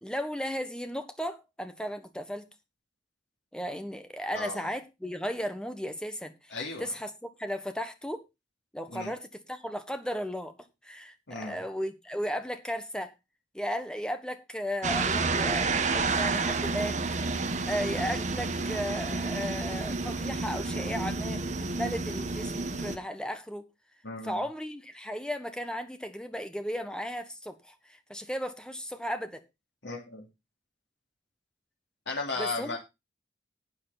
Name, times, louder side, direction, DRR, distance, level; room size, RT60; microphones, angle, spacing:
voice 1, 0.0-2.5 3.5-8.2 8.7-10.5 10.8-13.1 13.5-17.0 17.4-21.4 21.8-23.7 24.2-29.4 32.4-32.8, equal, 5° left, 1.3 m, -35 dB
voice 2, 6.5-6.8 8.9-9.1 11.3-11.6 24.0-24.4 29.8-30.2 32.1-32.8, left 3 dB, 80° left, 3.1 m, -35 dB
sound 1, 14.8-23.0, right 3 dB, 40° right, 1.3 m, -30 dB
12.0 x 8.5 x 4.1 m
head